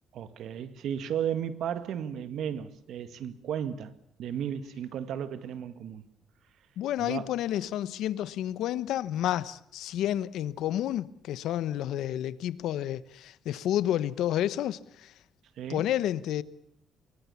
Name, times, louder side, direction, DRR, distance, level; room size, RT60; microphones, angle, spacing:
voice 1, 0.1-3.9 4.2-6.0 7.0-7.3 15.6-15.8, right 9 dB, 70° right, 2.0 m, -34 dB
voice 2, 6.8-15.1 15.7-16.4, left 12 dB, 85° left, 1.0 m, -30 dB
25.5 x 23.5 x 7.2 m
cardioid pair, 120°, 0 cm